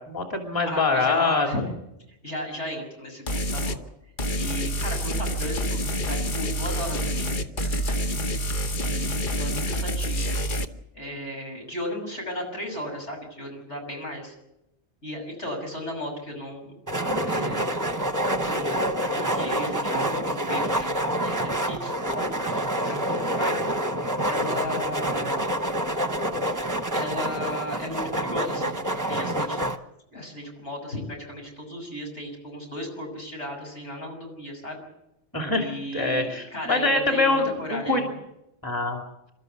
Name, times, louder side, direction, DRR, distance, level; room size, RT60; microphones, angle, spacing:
voice 1, 0.0-1.5 35.3-35.7 35.9-38.0 38.6-39.0, left 3 dB, 20° left, 2 dB, 2.8 m, -24 dB
voice 2, 0.6-1.6 2.1-3.2 3.5-3.8 4.3-5.8 6.1-8.2 8.8-10.3 10.9-14.3 15.0-16.7 17.2-17.9 18.4-22.6 22.9-23.6 24.2-25.5 26.9-28.8 29.1-29.6 30.1-34.8 35.5-38.2, left 1 dB, 80° left, 1 dB, 6.8 m, -35 dB
sound 1, 3.3-3.8 4.2-10.7, equal, 45° left, 1.2 m, -27 dB
sound 2, 16.9-29.8, right 1 dB, 15° right, 1.1 m, -27 dB
27.5 x 13.0 x 8.2 m, 0.86 s
omnidirectional pair, 1.2 m